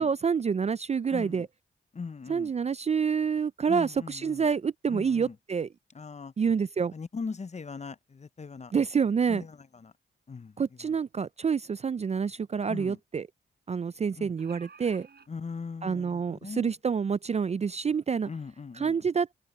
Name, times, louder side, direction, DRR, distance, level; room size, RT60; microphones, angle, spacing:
voice 1, 0.0-1.5 2.3-5.7 6.4-6.9 8.7-9.4 10.6-13.3 13.7-15.1 15.8-18.3 18.8-19.3, right 6 dB, 30° right, 0.3 m, -27 dB
voice 2, 1.1-1.5 1.9-2.5 3.7-4.5 4.9-5.4 5.9-6.3 6.9-8.7 9.3-9.9 10.3-10.6 10.8-11.0 12.7-13.0 14.2-14.3 15.3-16.7 18.3-18.9, left 5 dB, 35° left, 0.6 m, -40 dB
sound 1, 12.0-12.1 12.4-12.5 14.1-15.3 16.2-16.3 16.7-16.8, right 5 dB, 50° right, 7.3 m, -52 dB
open air
cardioid pair, 55°, 21 cm